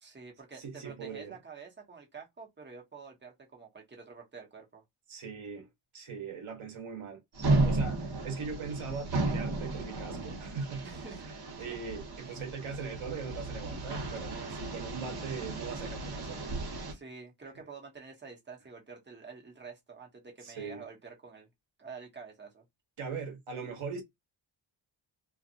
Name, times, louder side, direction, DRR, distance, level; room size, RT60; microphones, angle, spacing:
voice 1, 0.0-4.8 10.8-11.2 16.9-21.5 21.8-22.6, right 5 dB, 20° right, 1.2 m, -48 dB
voice 2, 0.6-1.4 5.1-7.2 7.6-10.9 11.6-16.4 20.4-20.9 23.0-24.0, right 5 dB, 80° right, 1.2 m, -40 dB
sound 1, 7.4-16.9, right 2 dB, 50° right, 1.4 m, -34 dB
2.8 x 2.5 x 2.5 m
cardioid pair, 90°, 48 cm